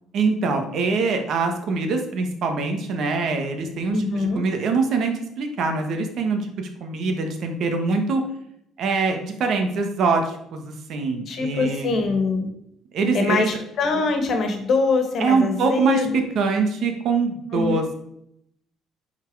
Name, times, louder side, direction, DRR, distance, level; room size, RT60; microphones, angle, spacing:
voice 1, 0.1-8.2 8.8-12.0 12.9-13.5 15.2-17.8, right 4 dB, 55° right, 5 dB, 1.4 m, -23 dB
voice 2, 3.9-4.4 11.3-12.5 13.1-16.2 17.5-17.8, left 3 dB, 45° left, 6 dB, 1.7 m, -23 dB
10.5 x 4.3 x 4.8 m, 0.75 s
cardioid pair, 140°, 0 cm